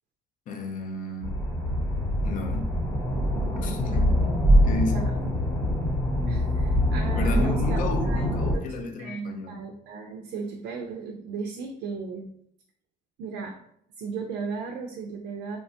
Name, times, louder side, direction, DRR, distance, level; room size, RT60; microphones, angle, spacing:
voice 1, 0.5-1.3 2.2-2.7 3.6-4.3 4.6-5.1 7.1-9.6, left 2 dB, 50° left, 5 dB, 0.5 m, -32 dB
sound 1, 1.2-8.5, equal, 15° left, 0.8 m, -24 dB
voice 2, 6.3-8.2 8.5-12.3 13.2-13.6 14.0-15.6, right 5 dB, 85° right, 3 dB, 0.4 m, -36 dB
3.1 x 2.1 x 2.7 m, 0.67 s
cardioid pair, 110°, 17 cm